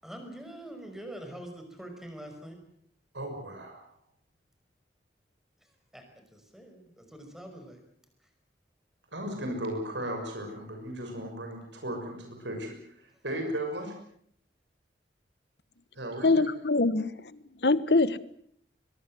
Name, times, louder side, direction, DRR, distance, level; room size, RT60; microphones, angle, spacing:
voice 1, 0.0-2.6 5.6-7.8 8.2-8.3 13.3-13.4, right 1 dB, ahead, 5 dB, 5.5 m, -45 dB
voice 2, 3.1-3.8 9.1-13.9 15.9-16.5, right 1 dB, 90° right, 3 dB, 6.3 m, -36 dB
voice 3, 16.2-18.2, left 3 dB, 65° left, 15 dB, 1.3 m, -24 dB
23.0 x 23.0 x 7.7 m, 0.66 s
head